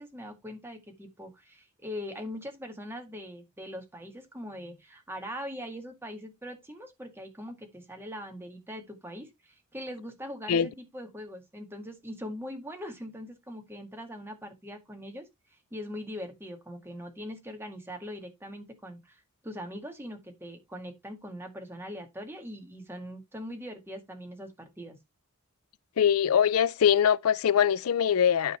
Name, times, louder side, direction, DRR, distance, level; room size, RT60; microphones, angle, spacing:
voice 1, 0.0-15.2 15.7-25.0, equal, 10° right, 2.0 m, -41 dB
voice 2, 26.0-28.6, left 8 dB, 90° left, 0.4 m, -23 dB
11.5 x 4.0 x 4.5 m
head